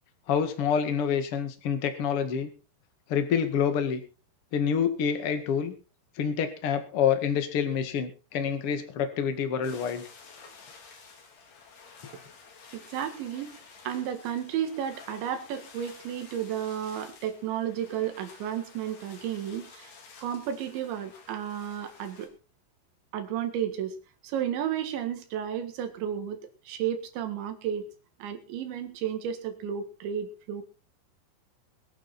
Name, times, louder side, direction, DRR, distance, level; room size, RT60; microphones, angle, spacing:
voice 1, 0.3-2.5 3.1-4.0 4.5-5.7 6.2-10.0, left 7 dB, 45° left, 7 dB, 1.9 m, -27 dB
sound 1, 9.6-22.3, left 5 dB, 65° left, 5.1 m, -51 dB
voice 2, 12.7-13.5 13.9-19.9 20.2-22.3 23.1-24.0 24.2-27.9 28.2-30.6, right 9 dB, 80° right, 8 dB, 4.1 m, -32 dB
22.5 x 9.1 x 4.3 m, 0.35 s
omnidirectional pair, 5.2 m